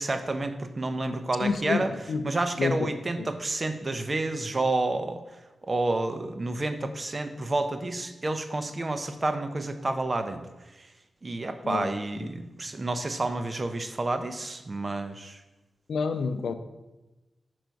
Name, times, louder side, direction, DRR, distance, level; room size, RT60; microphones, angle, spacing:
voice 1, 0.0-1.9 2.2-5.2 5.6-10.4 11.2-15.4, right 2 dB, 35° right, 8 dB, 0.6 m, -29 dB
voice 2, 1.4-2.3 2.6-2.9 3.2-3.3 11.6-11.9 12.2-12.3 15.9-16.5, left 5 dB, 85° left, 10 dB, 0.4 m, -29 dB
6.0 x 5.2 x 4.5 m, 1.1 s
wide cardioid pair, 100°, 0 cm